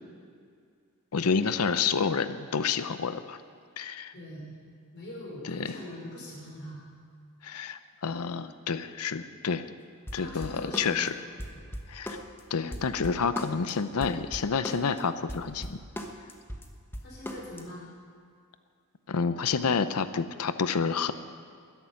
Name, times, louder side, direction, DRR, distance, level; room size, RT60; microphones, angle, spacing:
voice 1, 1.1-3.4 3.8-4.1 5.4-5.7 7.4-9.6 10.1-11.1 11.9-12.2 12.5-15.8 19.1-21.1, left 5 dB, 85° left, 12 dB, 0.6 m, -29 dB
voice 2, 4.1-4.6 4.9-6.8 10.1-11.2 11.5-11.6 17.0-17.8 19.5-19.7, left 1 dB, 50° left, -3 dB, 5.2 m, -42 dB
sound 1, 10.1-11.1 11.4-12.4 12.7-13.7 14.0-15.0 15.3-17.6, equal, 10° left, 1.1 m, -38 dB
13.5 x 10.5 x 9.6 m, 2.2 s
head